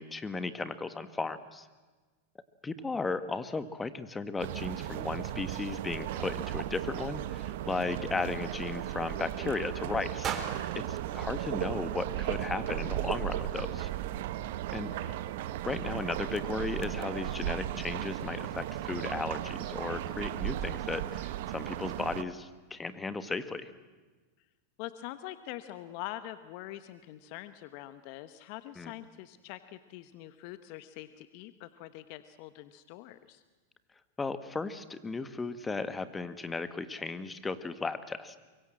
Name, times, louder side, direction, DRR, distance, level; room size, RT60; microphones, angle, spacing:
voice 1, 0.0-1.7 2.6-10.4 10.7-13.9 14.7-14.9 15.6-23.7 28.8-28.9 34.2-38.4, left 3 dB, 15° left, 12 dB, 1.5 m, -35 dB
sound 1, 4.4-22.2, right 13 dB, 65° right, 1.2 m, -36 dB
sound 2, 10.2-12.4, right 7 dB, 30° right, 3.6 m, -40 dB
voice 2, 14.9-15.2 24.8-33.4, left 14 dB, 55° left, 12 dB, 1.1 m, -44 dB
24.5 x 23.0 x 7.7 m, 1.3 s
hypercardioid pair, 110°, 0 cm